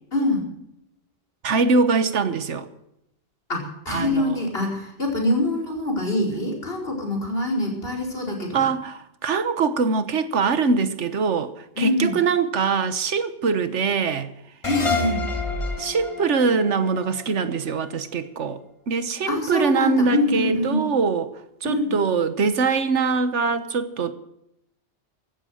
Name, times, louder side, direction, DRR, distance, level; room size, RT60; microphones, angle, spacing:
voice 1, 0.1-0.4 3.5-8.6 11.8-12.2 14.6-15.2 19.3-20.9 21.6-21.9, left 2 dB, 55° left, 5.1 m, -24 dB
voice 2, 1.4-2.7 3.9-4.4 8.5-14.3 15.8-18.6 18.9-21.3 21.6-24.1, right 5 dB, 90° right, 1.5 m, -23 dB
sound 1, 14.6-17.9, left 3 dB, 25° left, 2.4 m, -29 dB
15.5 x 13.0 x 6.4 m
omnidirectional pair, 1.2 m